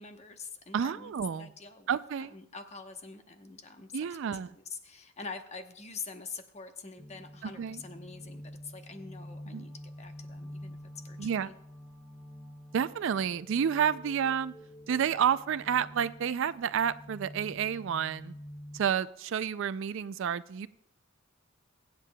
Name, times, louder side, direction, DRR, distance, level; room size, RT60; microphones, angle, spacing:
voice 1, 0.0-2.0 2.3-3.9 4.5-9.7 10.0-10.8 11.0-11.5, left 4 dB, 35° left, 6 dB, 1.0 m, -45 dB
voice 2, 0.7-1.5 1.9-2.3 3.9-4.5 7.6-7.8 9.5-9.7 11.2-11.5 12.7-14.5 14.9-18.4 18.7-20.7, right 8 dB, 65° right, 16 dB, 0.4 m, -30 dB
sound 1, 7.0-18.8, equal, 5° left, 1.7 m, -48 dB
23.5 x 8.3 x 2.2 m, 0.75 s
head